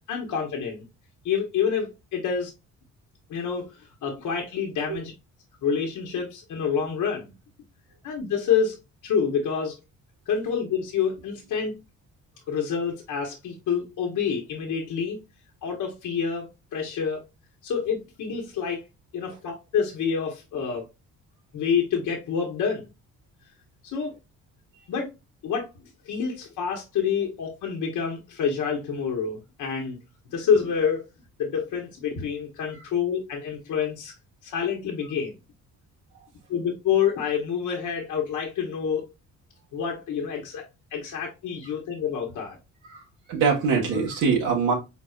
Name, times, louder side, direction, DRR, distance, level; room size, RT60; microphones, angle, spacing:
voice 1, 0.1-0.8 1.2-2.5 3.3-3.7 4.0-5.1 5.6-7.3 8.0-8.8 9.0-9.8 10.3-11.8 12.5-15.2 15.6-17.2 17.6-18.8 19.1-20.9 21.5-22.8 23.9-24.2 24.9-25.1 25.4-25.7 26.0-30.0 30.3-31.1 31.4-34.1 34.4-35.3 36.5-39.1 39.7-40.7 40.9-42.6, left 7 dB, 80° left, 1.1 m, -27 dB
voice 2, 43.3-44.7, right 5 dB, 85° right, 1.5 m, -23 dB
4.3 x 3.8 x 2.4 m
cardioid pair, 90°, 30 cm